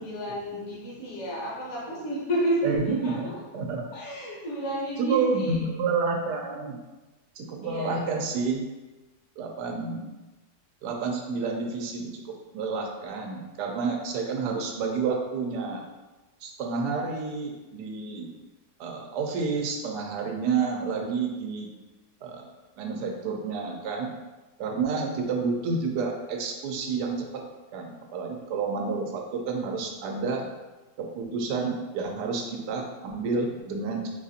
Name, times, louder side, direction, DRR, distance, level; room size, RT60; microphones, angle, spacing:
voice 1, 0.0-3.2 3.9-5.7 7.6-8.2, right 1 dB, 55° left, -6 dB, 1.1 m, -31 dB
voice 2, 2.6-3.3 3.5-3.9 5.0-6.8 7.4-8.6 9.4-10.1 10.8-15.8 16.4-18.3 18.8-21.7 22.2-22.5 22.8-24.1 24.6-27.5 27.7-30.5 31.0-34.1, right 4 dB, 90° right, 2 dB, 1.2 m, -29 dB
4.2 x 2.4 x 2.6 m, 1.1 s
omnidirectional pair, 1.7 m